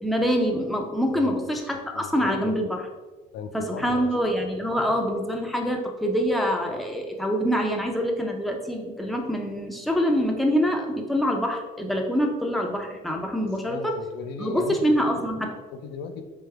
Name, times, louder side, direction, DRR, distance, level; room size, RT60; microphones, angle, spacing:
voice 1, 0.0-2.8 3.5-13.9 14.4-15.6, equal, ahead, 1 dB, 0.6 m, -25 dB
voice 2, 1.9-2.5 3.3-4.1 13.7-15.2 15.7-16.3, left 5 dB, 80° left, 6 dB, 0.4 m, -37 dB
3.7 x 3.4 x 3.4 m, 1.2 s
cardioid pair, 110°, 17 cm